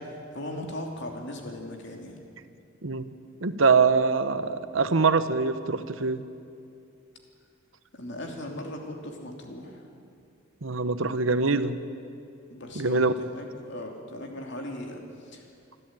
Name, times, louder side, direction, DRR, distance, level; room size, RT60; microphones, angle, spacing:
voice 1, 0.3-2.2 7.9-9.8 12.5-15.4, left 1 dB, 60° left, 2 dB, 3.1 m, -38 dB
voice 2, 3.4-6.2 10.6-11.8 12.7-13.1, right 4 dB, 80° right, 11 dB, 1.0 m, -23 dB
25.5 x 13.5 x 9.0 m, 2.5 s
head